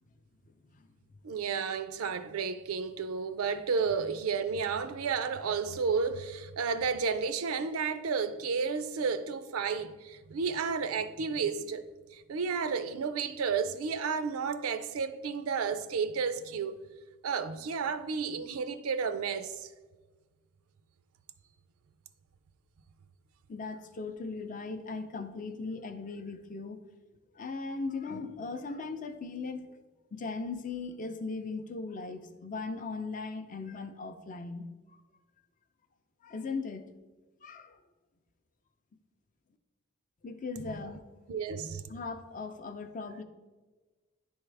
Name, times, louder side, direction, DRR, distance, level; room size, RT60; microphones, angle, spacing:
voice 1, 1.2-11.9 12.1-16.8 17.2-19.7 40.7-40.8 41.3-41.8, right 5 dB, 80° right, 0.4 m, -32 dB
voice 2, 23.5-26.8 27.3-29.8 30.1-35.0 36.2-36.9 37.4-37.8 40.2-41.0 41.9-43.2, left 4 dB, 40° left, 0.5 m, -38 dB
10.0 x 3.6 x 3.3 m
head